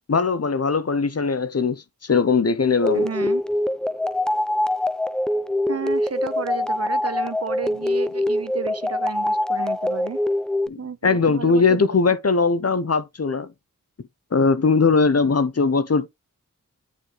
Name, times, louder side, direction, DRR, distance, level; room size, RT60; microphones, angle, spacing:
voice 1, 0.1-3.1 10.7-13.5 14.3-16.1, left 4 dB, 45° left, 0.8 m, -20 dB
sound 1, 2.8-10.7, left 1 dB, ahead, 0.5 m, -24 dB
voice 2, 2.9-3.4 5.7-10.2 10.8-11.9, right 6 dB, 45° right, 0.7 m, -32 dB
9.2 x 3.5 x 3.9 m
wide cardioid pair, 45°, 34 cm